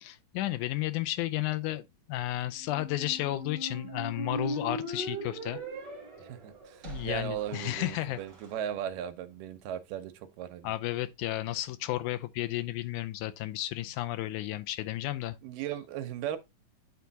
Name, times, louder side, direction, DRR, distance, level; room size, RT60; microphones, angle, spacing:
voice 1, 0.0-5.6 6.8-8.2 10.6-15.4, left 15 dB, 80° left, 1.9 m, -33 dB
Squeak, 2.5-8.5, right 1 dB, 35° right, 2.0 m, -40 dB
voice 2, 6.2-10.7 15.4-16.4, right 10 dB, 80° right, 2.3 m, -37 dB
9.2 x 3.5 x 4.0 m
omnidirectional pair, 3.9 m